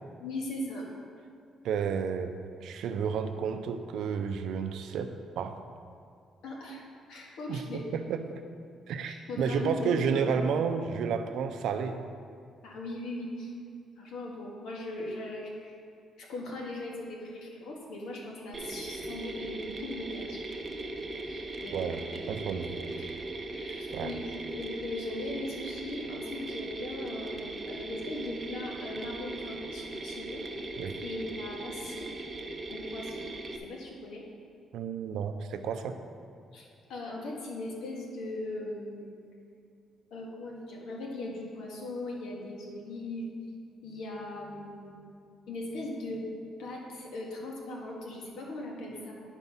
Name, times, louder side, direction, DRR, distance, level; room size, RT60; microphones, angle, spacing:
voice 1, 0.2-0.9 6.4-6.8 7.1-7.9 9.1-10.4 12.6-13.5 14.0-15.8 16.2-20.6 21.2-22.3 22.7-23.1 23.5-30.7 31.0-32.1 32.7-33.3 33.6-34.2 36.5-36.6 36.9-39.2 40.1-43.3 43.8-44.9 45.5-46.2 46.6-49.1, left 2 dB, 85° left, -2 dB, 1.8 m, -39 dB
voice 2, 1.6-2.3 2.6-5.6 7.5-8.4 8.9-12.0 21.7-22.0 22.3-22.7 23.9-24.1 30.8-31.0 34.7-36.0, right 6 dB, 75° right, 7 dB, 0.6 m, -31 dB
Mechanisms, 18.5-33.6, right 2 dB, 25° right, 0.6 m, -39 dB
10.5 x 4.6 x 5.6 m, 2.4 s
cardioid pair, 155°, 0 cm